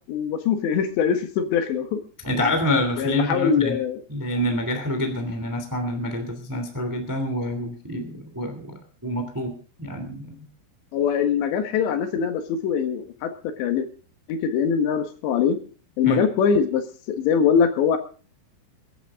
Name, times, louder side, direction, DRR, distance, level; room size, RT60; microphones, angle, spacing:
voice 1, 0.1-2.0 2.4-2.6 3.0-4.0 10.9-13.9 14.3-15.6 16.0-18.0, left 7 dB, 70° left, 7 dB, 3.4 m, -23 dB
voice 2, 2.2-3.8 4.1-9.5 9.8-10.5 16.0-16.2, left 1 dB, 30° right, 5 dB, 0.3 m, -27 dB
23.5 x 11.5 x 3.6 m, 0.38 s
omnidirectional pair, 5.7 m